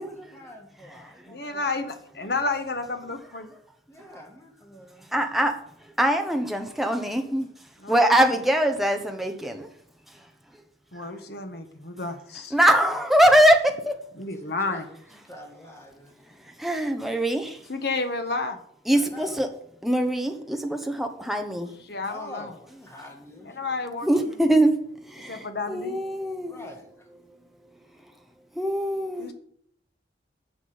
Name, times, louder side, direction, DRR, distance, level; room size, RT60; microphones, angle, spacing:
voice 1, 0.0-1.8 3.9-5.3 7.3-7.5 14.4-15.0 15.3-16.4 18.9-19.4 20.7-20.8 22.0-23.8 26.5-27.1, left 1 dB, 15° left, 2.1 m, -46 dB
voice 2, 1.3-3.5 7.8-8.2 10.9-12.5 14.2-14.8 17.7-18.6 21.8-22.5 23.4-24.4 25.3-26.0 29.2-29.3, left 3 dB, 60° left, 1.5 m, -31 dB
voice 3, 5.1-5.5 6.0-7.5 7.9-9.7 12.5-13.9 16.6-17.6 18.9-19.5 19.8-21.7 24.0-24.8 25.1-26.7 28.6-29.3, right 1 dB, ahead, 1.2 m, -22 dB
10.0 x 6.1 x 7.8 m
head